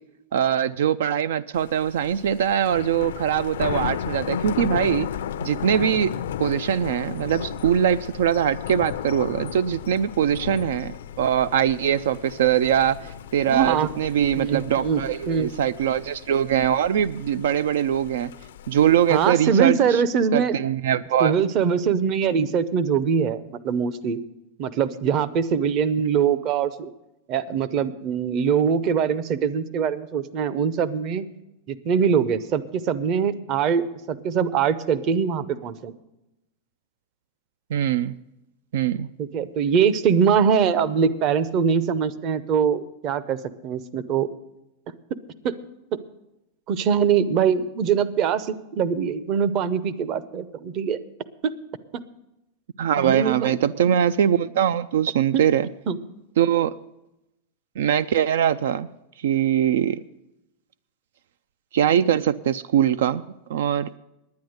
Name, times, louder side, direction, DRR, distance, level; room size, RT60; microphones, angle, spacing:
voice 1, 0.3-5.1 5.4-6.1 6.4-18.3 18.7-20.0 20.3-21.4 37.7-38.2 38.7-39.1 52.8-55.7 56.4-56.7 57.8-58.9 59.2-60.0 61.7-63.2 63.5-63.9, right 9 dB, 85° right, 17 dB, 0.4 m, -22 dB
Thunder, 1.5-19.3, left 9 dB, 90° left, 0.5 m, -34 dB
voice 2, 13.5-13.9 14.4-15.0 15.3-15.5 19.1-20.5 21.2-24.2 24.6-26.9 27.3-31.2 31.7-35.9 39.2-44.3 45.4-45.5 46.7-51.0 51.4-51.5 53.0-53.6 55.3-55.4 55.9-56.0, right 7 dB, 35° right, 16 dB, 0.7 m, -23 dB
10.5 x 9.4 x 7.8 m, 0.90 s
supercardioid pair, 155°, 0 cm